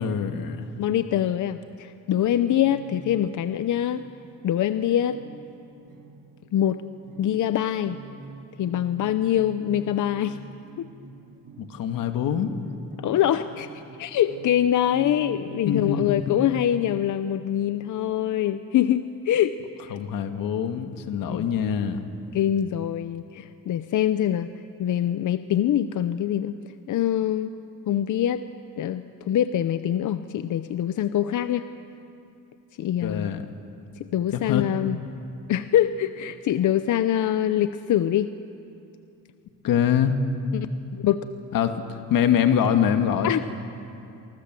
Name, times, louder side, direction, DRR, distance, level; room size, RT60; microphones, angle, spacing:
voice 1, 0.0-0.7 11.6-12.5 15.7-16.4 19.9-22.0 33.0-33.5 34.3-34.6 39.6-40.1 41.5-43.3, left 8 dB, 90° left, 6 dB, 1.9 m, -24 dB
voice 2, 0.8-4.0 4.4-5.2 6.5-6.8 7.2-8.0 8.6-10.4 10.8-10.9 13.0-13.7 14.0-19.6 19.8-20.0 21.3-21.5 22.3-24.5 24.8-26.6 26.9-27.5 27.9-28.4 28.8-31.6 32.8-33.3 34.1-35.0 35.5-38.3 40.5-40.7 40.9-41.2 43.2-43.4, left 11 dB, 65° left, 11 dB, 0.7 m, -24 dB
sound 1, 2.3-7.4 7.8-16.5, right 4 dB, 70° right, 2.3 m, -46 dB
30.0 x 23.5 x 7.6 m, 2.6 s
cardioid pair, 145°, 33 cm